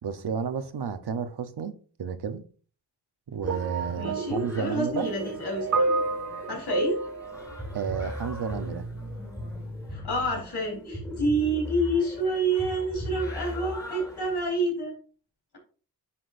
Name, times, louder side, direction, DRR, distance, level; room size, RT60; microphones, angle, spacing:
voice 1, 0.0-1.7 2.0-2.4 3.3-5.1 7.7-8.9, right 6 dB, 75° right, 0.9 m, -32 dB
sound 1, 3.4-14.5, equal, 10° left, 2.6 m, -38 dB
sound 2, 3.5-8.6 9.5-9.6, right 3 dB, 45° right, 0.4 m, -31 dB
voice 2, 4.0-5.9 6.5-7.0 9.9-14.9, right 1 dB, 75° left, 4.0 m, -28 dB
9.8 x 6.0 x 2.6 m
wide cardioid pair, 125°, 40 cm